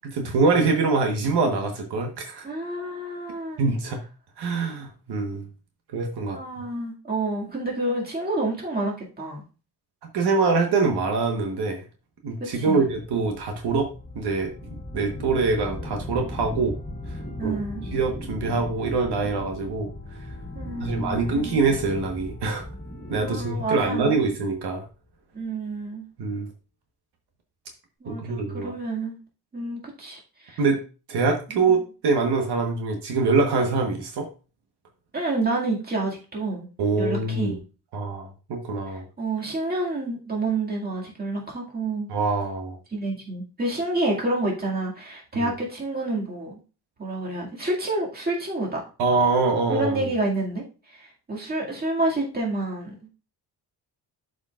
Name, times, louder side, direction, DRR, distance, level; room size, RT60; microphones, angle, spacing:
voice 1, 0.0-2.4 3.6-4.0 4.4-5.5 5.9-6.4 10.1-11.8 12.2-13.9 14.1-14.5 14.9-16.7 17.4-17.6 17.9-19.9 20.8-22.6 23.1-24.8 26.2-26.5 28.1-28.7 30.6-30.8 31.1-34.3 36.8-37.6 37.9-39.0 42.1-42.8 45.3-45.5 49.0-50.1, right 4 dB, 75° right, 3 dB, 1.3 m, -24 dB
voice 2, 2.4-3.6 6.3-9.4 12.5-12.8 17.4-17.9 20.6-21.5 23.1-24.3 25.3-26.0 28.0-29.2 29.5-30.6 35.1-36.7 37.0-37.6 39.2-42.1 42.9-46.6 47.0-48.8 49.7-53.1, right 2 dB, 25° right, -3 dB, 2.2 m, -29 dB
sound 1, 12.7-24.7, left 1 dB, 25° left, 2.0 m, -37 dB
11.5 x 5.0 x 2.4 m, 0.34 s
cardioid pair, 140°, 39 cm